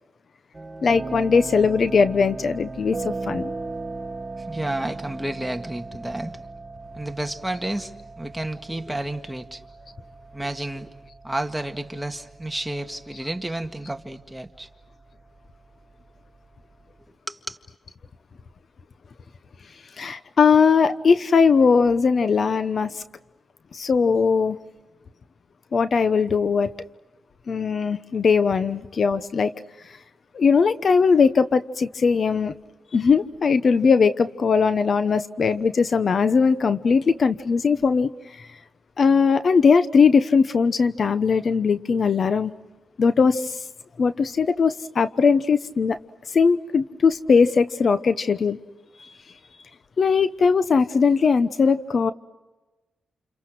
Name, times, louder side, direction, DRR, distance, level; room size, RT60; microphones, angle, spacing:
sound 1, 0.5-17.0, right 3 dB, 30° right, 1.9 m, -38 dB
voice 1, 0.8-3.5 20.0-23.0 23.7-24.6 25.7-26.7 27.5-29.5 30.3-32.5 32.9-38.1 38.4-38.5 39.0-42.5 43.0-43.6 44.0-46.0 46.3-48.6 50.0-52.1, left 5 dB, 55° left, 1.0 m, -19 dB
voice 2, 4.4-6.4 6.9-9.6 10.3-10.9 11.2-14.7 17.3-17.6, right 1 dB, 10° right, 1.9 m, -31 dB
29.5 x 28.5 x 6.3 m
cardioid pair, 90°, 0 cm